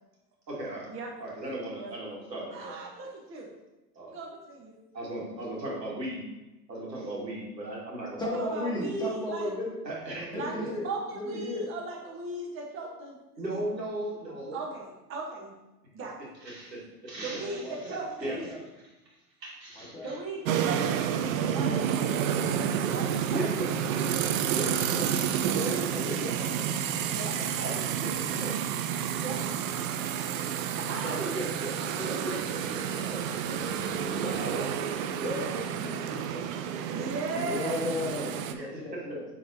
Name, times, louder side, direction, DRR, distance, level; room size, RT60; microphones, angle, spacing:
voice 1, 0.5-0.9 1.2-2.7 4.0-4.1 4.9-6.2 6.7-8.1 9.8-10.4 13.4-14.6 16.4-18.6 19.4-20.2 23.3-23.7 24.5-25.2 25.5-26.7 27.6-28.1 28.3-28.6 31.0-33.7 34.1-34.7 35.2-36.5 38.5-38.8, right 1 dB, 85° right, -4 dB, 2.2 m, -37 dB
voice 2, 2.5-3.5 4.1-4.8 8.3-9.5 10.3-10.5 10.8-13.2 13.5-13.6 14.5-15.5 15.9-16.2 17.2-18.5 20.0-21.9 22.9-23.4 27.1-27.4 29.1-29.4 30.8-31.2 35.3-35.6 36.9-37.9, right 3 dB, 25° right, -1 dB, 1.2 m, -37 dB
voice 3, 8.2-9.8 10.2-11.7 17.1-18.6 19.8-20.1 26.0-26.2 36.9-37.0 37.3-39.3, left 2 dB, 10° left, -5 dB, 1.5 m, -35 dB
sound 1, 20.5-38.5, right 8 dB, 55° right, 0.6 m, -30 dB
8.8 x 4.0 x 2.8 m, 1.0 s
hypercardioid pair, 100°, 49 cm